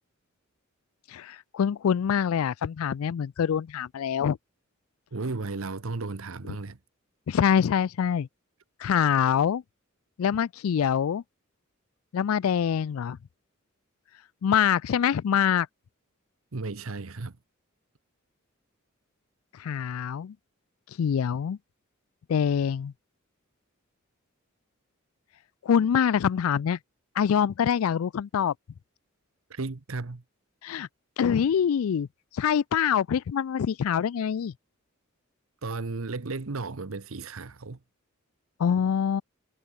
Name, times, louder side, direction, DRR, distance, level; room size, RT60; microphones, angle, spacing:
voice 1, 1.1-4.4 7.3-8.3 8.8-9.6 10.2-11.2 12.1-13.2 14.4-15.7 19.6-20.3 21.0-21.6 22.3-22.9 25.6-26.8 27.2-28.5 30.6-30.9 31.2-32.1 32.3-34.5 38.6-39.2, left 8 dB, 80° left, 0.4 m, -25 dB
voice 2, 5.1-6.8 16.5-17.4 29.5-30.2 35.6-37.8, right 3 dB, 75° right, 1.0 m, -34 dB
head